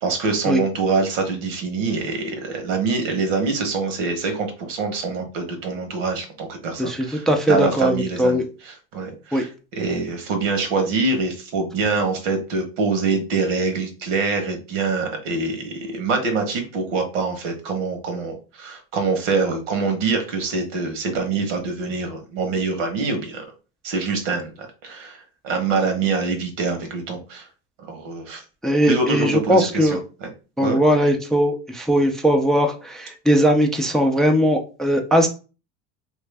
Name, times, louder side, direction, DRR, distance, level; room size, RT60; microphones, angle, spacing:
voice 1, 0.0-23.4 23.8-24.5 24.8-27.5 27.9-28.4 28.9-30.3 30.6-30.8, right 4 dB, 90° right, 4 dB, 1.2 m, -25 dB
voice 2, 6.8-8.4 9.3-9.4 28.6-30.0 30.6-35.3, equal, ahead, 3 dB, 0.4 m, -19 dB
3.1 x 2.6 x 3.3 m, 0.34 s
supercardioid pair, 105°, 37 cm